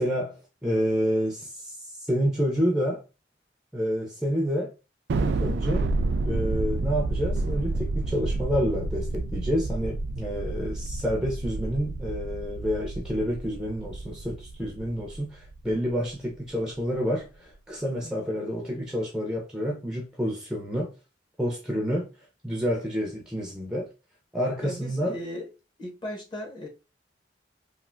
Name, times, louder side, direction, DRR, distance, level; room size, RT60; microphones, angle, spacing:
voice 1, 0.0-3.0 3.7-4.7 5.1-5.9 6.2-20.9 21.4-22.1 22.4-23.9 24.3-25.2, equal, 5° right, 0.5 m, -29 dB
Thunder, 5.1-15.7, right 2 dB, 70° right, 0.3 m, -30 dB
voice 2, 24.6-25.5 25.8-26.7, equal, 25° left, 0.8 m, -37 dB
3.2 x 2.4 x 2.4 m
head